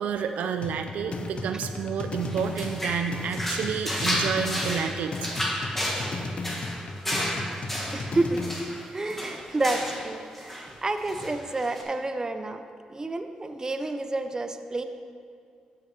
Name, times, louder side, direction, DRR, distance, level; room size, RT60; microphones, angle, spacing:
voice 1, 0.0-5.4, right 7 dB, 80° right, 7 dB, 0.4 m, -30 dB
sound 1, 0.6-8.6, left 2 dB, 50° left, 0.6 m, -35 dB
sound 2, 2.2-10.1 10.3-10.7 11.1-11.8, equal, 10° left, 1.8 m, -32 dB
voice 2, 7.9-8.4 8.9-12.6 12.9-14.8, right 2 dB, 25° right, 8 dB, 0.6 m, -29 dB
12.5 x 5.6 x 3.4 m, 2.2 s
cardioid pair, 70°, 2 cm